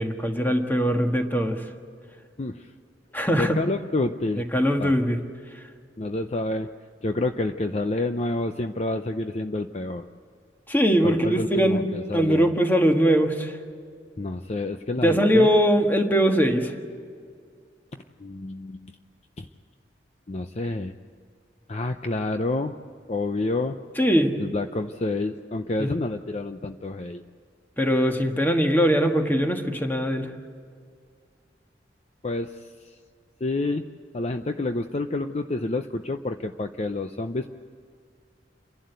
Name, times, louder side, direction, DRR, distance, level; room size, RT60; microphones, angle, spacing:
voice 1, 0.0-1.6 3.1-3.6 4.5-5.2 10.7-13.6 15.0-16.7 24.0-24.3 25.8-25.9 27.8-30.3, equal, 10° left, 4 dB, 1.6 m, -21 dB
voice 2, 2.4-2.7 3.4-4.4 4.8-4.9 6.0-6.7 7.0-10.1 11.0-12.5 14.2-15.5 18.2-18.9 19.4-19.5 20.3-20.9 21.7-22.7 23.1-23.8 24.4-27.2 32.2-32.6 33.4-33.8 34.1-37.5, left 2 dB, 35° left, 7 dB, 0.6 m, -28 dB
28.5 x 11.5 x 8.1 m, 2.2 s
head